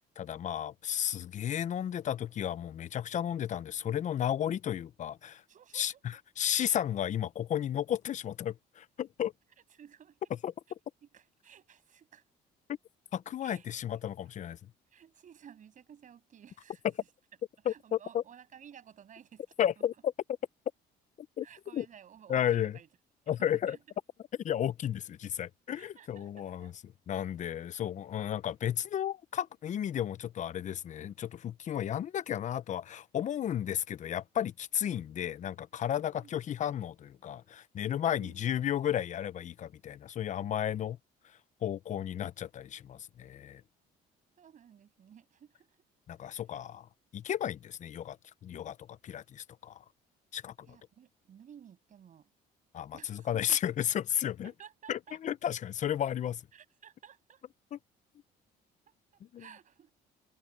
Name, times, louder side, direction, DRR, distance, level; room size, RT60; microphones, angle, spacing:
voice 1, 0.2-5.4 5.7-5.9 6.4-9.3 10.4-10.5 13.1-14.6 17.6-18.2 19.6-20.1 21.4-21.5 21.7-21.9 22.3-22.8 23.3-23.8 24.4-26.7 27.1-41.0 41.6-43.6 46.1-46.9 47.1-48.2 48.4-49.8 50.3-50.7 52.7-54.5 54.9-56.4 57.7-57.8 59.3-59.5, left 10 dB, 45° left, 0.8 m, -33 dB
voice 2, 5.5-6.0 9.6-10.2 11.0-12.2 13.4-13.7 14.9-16.8 17.6-19.4 21.4-22.9 23.3-24.0 25.7-26.7 34.7-34.9 36.1-36.3 38.0-38.5 43.5-43.6 44.4-45.7 46.2-46.4 50.6-52.3 52.9-53.6 54.4-55.2 56.5-57.4 58.9-59.0 59.4-59.9, right 8 dB, 50° right, 7.4 m, -55 dB
cardioid pair, 110°, 17 cm